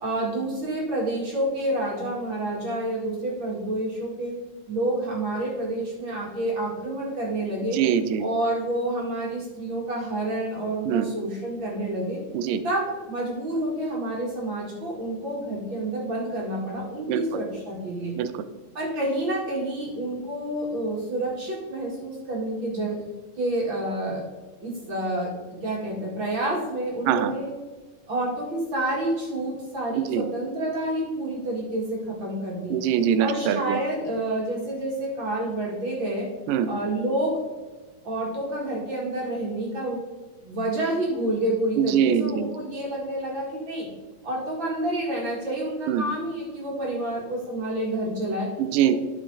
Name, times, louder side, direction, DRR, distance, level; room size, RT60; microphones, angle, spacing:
voice 1, 0.0-4.4 4.7-7.8 8.2-12.2 12.6-18.1 18.7-23.0 23.4-24.2 24.6-25.3 25.6-27.5 28.1-32.8 33.2-36.3 36.7-37.4 38.0-40.0 40.4-43.9 44.2-48.5 48.9-49.0, right 1 dB, 40° right, -4 dB, 2.2 m, -28 dB
voice 2, 7.7-8.2 10.9-11.1 12.3-12.6 17.1-17.4 18.2-18.4 27.1-27.3 30.0-30.3 32.7-33.8 36.5-36.7 41.8-42.5 45.9-46.1 48.6-49.0, right 9 dB, 85° right, 11 dB, 2.2 m, -23 dB
12.0 x 5.2 x 3.9 m, 1.3 s
omnidirectional pair, 3.8 m